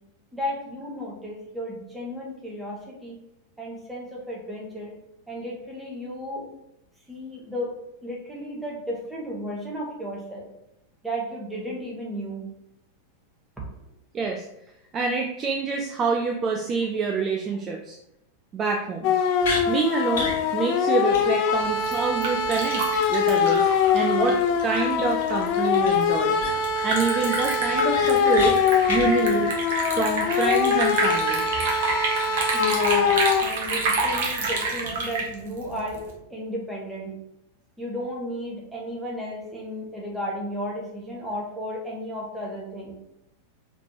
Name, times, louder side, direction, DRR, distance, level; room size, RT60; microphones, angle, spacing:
voice 1, 0.3-3.2 3.6-4.9 5.3-6.5 7.1-7.7 8.0-10.5 11.0-12.4 28.8-28.9 32.5-36.0 36.3-37.1 37.8-43.0, equal, 5° right, -3 dB, 1.4 m, -33 dB
voice 2, 14.1-14.5 14.9-18.0 18.5-19.1 19.7-22.8 23.1-23.7 23.9-26.4 26.8-28.6 28.9-29.5 29.9-31.4, right 4 dB, 25° right, 2 dB, 0.4 m, -26 dB
sound 1, 19.0-33.4, left 6 dB, 40° left, 0.4 m, -23 dB
sound 2, 19.4-19.6 20.1-20.4 20.7-20.8 21.1-21.2 21.5-21.6 25.8-25.9 26.4-26.8 27.2-27.3 27.6-28.5 28.8-29.1, left 3 dB, 55° left, 1.0 m, -30 dB
Liquid, 21.5-36.1, right 3 dB, 55° right, 1.0 m, -29 dB
4.9 x 3.2 x 2.8 m, 0.83 s
figure-of-eight pair, 90°, 0 cm